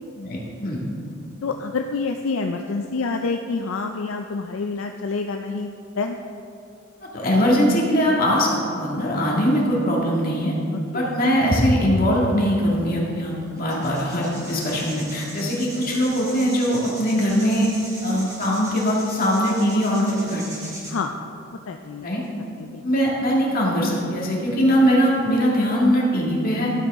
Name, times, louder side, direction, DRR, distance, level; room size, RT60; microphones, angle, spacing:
voice 1, 0.2-0.8 7.1-10.5 10.9-17.7 18.0-20.8 22.0-22.2 22.8-26.7, equal, 45° left, -3 dB, 1.9 m, -21 dB
voice 2, 1.4-5.7 6.0-6.2 10.9-11.1 20.9-21.1 21.7-22.1 22.6-22.8, left 4 dB, 70° left, 4 dB, 0.4 m, -27 dB
sound 1, 12.7-12.8 13.6-20.9, right 1 dB, 15° right, 2.0 m, -39 dB
12.0 x 8.2 x 3.6 m, 2.5 s
head